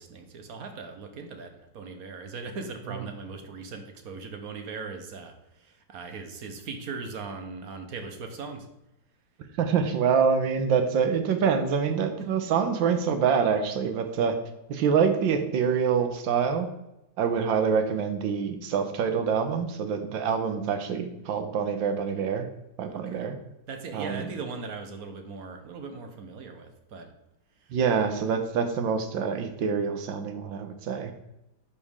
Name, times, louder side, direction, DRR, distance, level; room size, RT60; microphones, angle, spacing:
voice 1, 0.0-5.3 5.6-8.7 20.0-20.1 22.9-23.2 23.7-27.1, right 4 dB, 55° right, 5 dB, 1.3 m, -39 dB
voice 2, 9.6-14.4 14.7-16.7 17.2-22.5 22.8-23.4 23.9-24.3 27.7-31.1, right 6 dB, 80° right, 7 dB, 1.6 m, -26 dB
11.0 x 5.3 x 3.6 m, 0.89 s
omnidirectional pair, 2.1 m